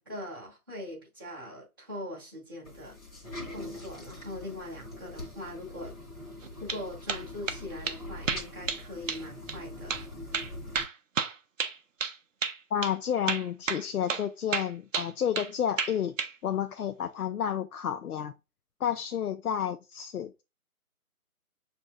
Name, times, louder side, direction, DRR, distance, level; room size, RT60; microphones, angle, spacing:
voice 1, 0.0-3.0 3.5-5.9 6.6-10.0, left 1 dB, 15° right, 0.8 m, -41 dB
sound 1, 2.6-10.8, left 1 dB, 25° left, 1.0 m, -43 dB
sound 2, 6.4-6.8 7.1-7.6 7.9-8.0 8.3-8.8 9.1-9.2 9.5-9.6 9.9-10.0 10.3-12.2 12.4-12.6 12.8-12.9 13.3-13.8 14.1-14.3 14.5-15.5 15.8-16.3, right 6 dB, 60° right, 0.5 m, -31 dB
voice 2, 12.7-16.1 16.4-18.3 18.8-20.4, left 9 dB, 80° left, 0.5 m, -30 dB
6.1 x 2.6 x 2.5 m
figure-of-eight pair, 170°, 44 cm